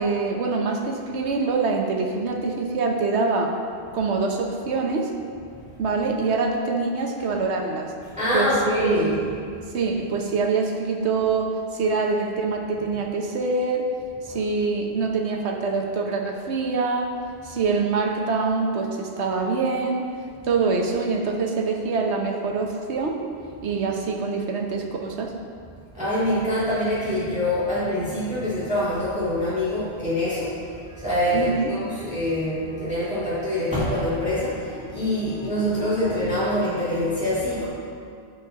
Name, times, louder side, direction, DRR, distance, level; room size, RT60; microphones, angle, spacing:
voice 1, 0.0-3.5 3.9-5.1 5.8-7.9 8.3-9.2 9.7-13.9 14.2-17.1 17.4-20.1 20.5-23.2 23.6-25.3 31.3-31.7, right 4 dB, 80° right, 2 dB, 1.2 m, -25 dB
voice 2, 8.2-9.2 14.3-14.4 25.9-37.7, left 1 dB, 5° right, -11 dB, 2.0 m, -25 dB
14.0 x 4.9 x 3.6 m, 2.3 s
omnidirectional pair, 1.1 m